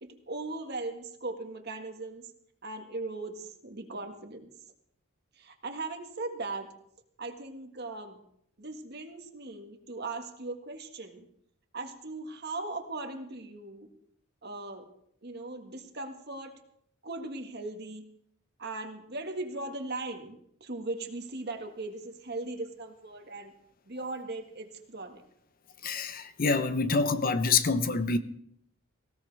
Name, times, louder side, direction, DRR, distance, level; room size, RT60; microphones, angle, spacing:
voice 1, 0.0-2.3 2.6-4.5 5.3-6.7 7.2-8.2 8.6-11.3 11.7-13.9 14.4-14.9 15.2-16.5 17.0-18.1 18.6-23.5 23.8-25.2, right 2 dB, 50° right, 1.7 m, -38 dB
voice 2, 25.8-28.2, left 4 dB, 45° left, 0.8 m, -26 dB
18.5 x 16.5 x 3.5 m
head